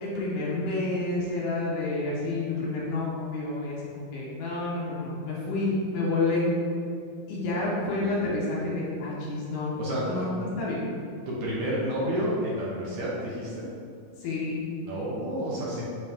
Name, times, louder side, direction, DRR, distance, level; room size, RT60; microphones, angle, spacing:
voice 1, 0.0-6.5 7.3-9.8 10.0-10.8 14.2-14.7, left 2 dB, 70° left, -5 dB, 2.5 m, -29 dB
voice 2, 9.8-10.3 11.3-13.7 14.8-15.9, equal, 70° right, -5 dB, 1.9 m, -30 dB
7.6 x 3.9 x 3.6 m, 2.2 s
omnidirectional pair, 4.2 m